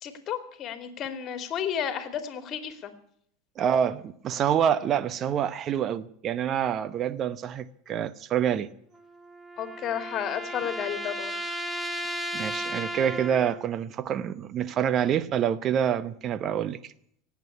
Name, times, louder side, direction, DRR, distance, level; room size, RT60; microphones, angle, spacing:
voice 1, 0.0-2.9 9.6-11.4, left 9 dB, 40° left, 2.6 m, -32 dB
voice 2, 3.6-8.7 12.3-16.9, right 9 dB, 40° right, 0.8 m, -27 dB
sound 1, 8.9-13.7, right 1 dB, 5° right, 1.8 m, -35 dB
17.5 x 8.4 x 9.7 m
hypercardioid pair, 85°, 0 cm